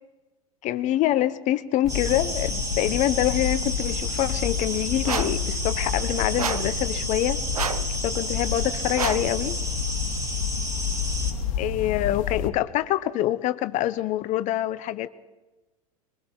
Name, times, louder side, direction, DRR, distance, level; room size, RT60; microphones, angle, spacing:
voice 1, 0.6-7.4 8.0-9.6 11.6-15.1, left 14 dB, 40° left, 1.0 m, -25 dB
sound 1, 1.8-12.5, left 7 dB, 60° left, 1.9 m, -30 dB
sound 2, 1.9-11.3, right 1 dB, 20° right, 4.3 m, -32 dB
sound 3, 5.0-5.4 6.4-6.8 7.5-7.9 8.9-9.3, right 6 dB, 85° right, 1.1 m, -29 dB
23.0 x 22.0 x 5.6 m
hypercardioid pair, 90°, 18 cm